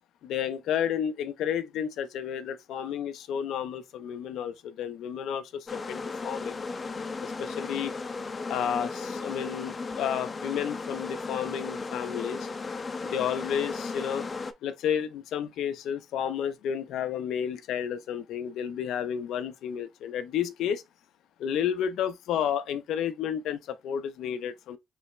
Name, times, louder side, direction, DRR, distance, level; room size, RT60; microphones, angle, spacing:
voice 1, 0.2-6.6 7.2-7.9 8.5-12.5 13.0-14.3 14.6-20.8 21.4-24.8, left 9 dB, 80° left, 0.6 m, -31 dB
sound 1, 5.7-14.5, left 4 dB, 30° left, 0.6 m, -35 dB
4.1 x 3.3 x 3.1 m
cardioid pair, 90°, 0 cm